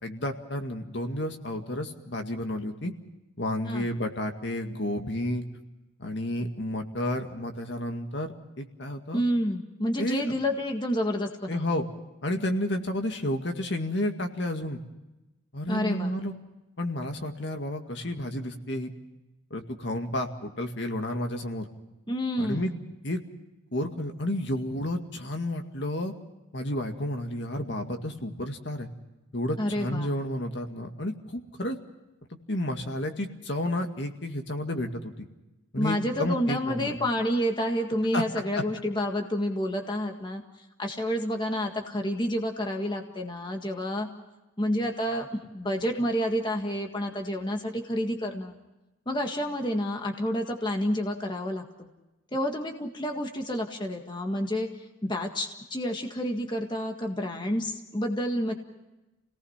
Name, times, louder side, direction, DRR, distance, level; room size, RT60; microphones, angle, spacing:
voice 1, 0.0-2.9 3.4-5.4 6.0-9.2 10.0-10.2 11.5-11.8 12.2-14.8 15.5-16.3 16.8-18.9 19.5-21.7 22.4-22.7 23.0-23.2 23.7-26.1 26.5-28.9 29.3-31.8 32.5-35.3 35.7-37.0 38.1-38.2, left 1 dB, 60° left, 4 dB, 2.1 m, -31 dB
voice 2, 9.1-11.6 15.7-16.1 22.1-22.8 29.6-30.1 35.8-40.4 40.8-44.1 44.6-48.6 49.0-51.9 52.3-58.5, equal, 20° left, 2 dB, 1.8 m, -29 dB
29.5 x 18.5 x 5.8 m, 1.0 s
head